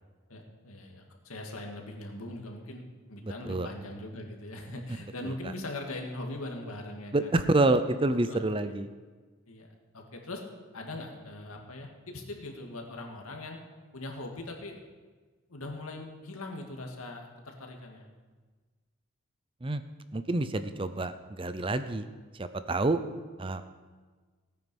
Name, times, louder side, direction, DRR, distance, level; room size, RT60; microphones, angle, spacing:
voice 1, 0.3-2.8 3.1-7.3 8.3-8.4 9.5-10.4 10.7-13.6 13.9-14.8 15.5-18.1, left 2 dB, 85° left, 2 dB, 2.1 m, -41 dB
voice 2, 3.2-3.7 5.2-5.5 7.1-8.9 19.6-19.8 20.1-22.1 22.4-23.0 23.4-23.6, right 2 dB, 25° right, 11 dB, 0.5 m, -28 dB
17.5 x 9.4 x 5.4 m, 1.4 s
head